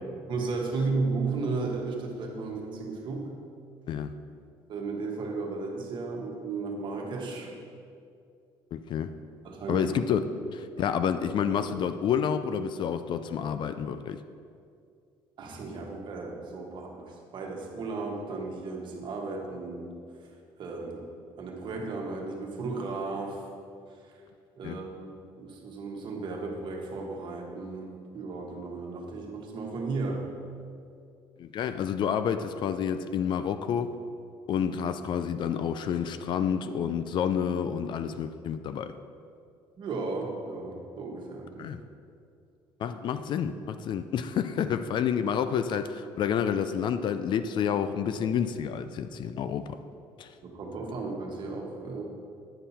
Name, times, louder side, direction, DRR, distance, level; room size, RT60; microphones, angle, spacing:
voice 1, 0.3-3.4 4.7-7.5 9.4-9.9 10.8-10.9 11.1-11.7 15.4-20.3 20.6-21.1 21.4-23.4 24.0-24.2 24.6-30.3 39.8-41.6 50.4-52.0, right 3 dB, 50° right, 0 dB, 1.5 m, -34 dB
voice 2, 8.7-9.1 9.7-10.2 10.5-14.2 24.6-24.8 31.4-33.9 34.5-39.0 41.6-41.8 42.8-49.8 50.2-50.3, left 8 dB, 50° left, 11 dB, 0.4 m, -29 dB
9.1 x 5.5 x 4.2 m, 2.4 s
cardioid pair, 100°, 10 cm